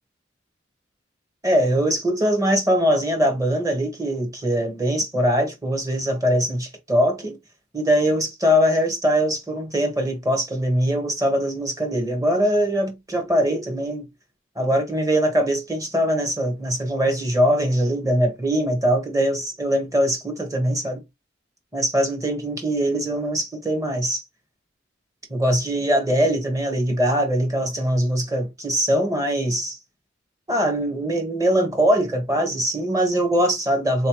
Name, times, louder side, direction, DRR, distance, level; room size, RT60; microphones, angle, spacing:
voice 1, 1.4-7.3 7.7-14.0 14.5-21.0 21.7-24.2 25.3-29.7 30.5-34.1, equal, 20° right, 1.3 m, -22 dB
3.8 x 3.2 x 3.0 m
head